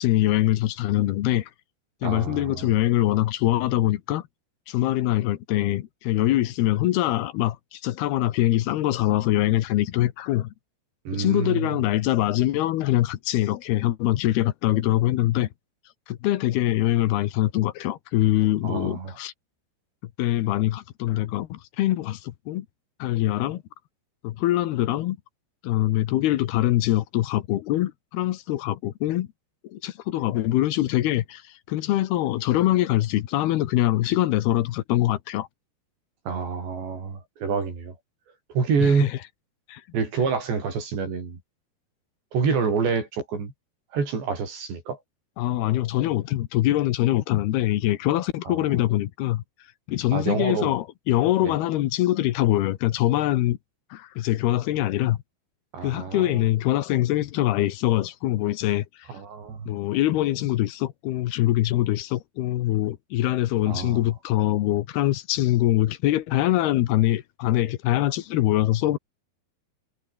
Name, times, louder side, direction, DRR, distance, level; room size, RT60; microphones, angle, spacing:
voice 1, 0.0-1.5 2.0-4.2 4.7-10.5 11.1-15.5 16.1-19.3 20.2-22.7 23.0-23.6 24.2-25.2 25.6-29.3 29.7-31.4 31.7-35.5 38.8-39.1 39.7-39.8 45.4-49.4 49.9-53.6 53.9-55.2 55.8-59.1 59.7-69.0, left 14 dB, 75° left, 3.0 m, -23 dB
voice 2, 2.0-2.8 11.1-11.8 18.6-19.1 36.3-38.0 38.5-39.1 39.9-41.4 42.3-43.5 43.9-45.0 48.5-48.7 50.1-50.7 51.4-51.5 55.7-56.4 59.1-59.7 63.7-64.1, right 5 dB, 90° right, 8.6 m, -27 dB
omnidirectional pair, 4.9 m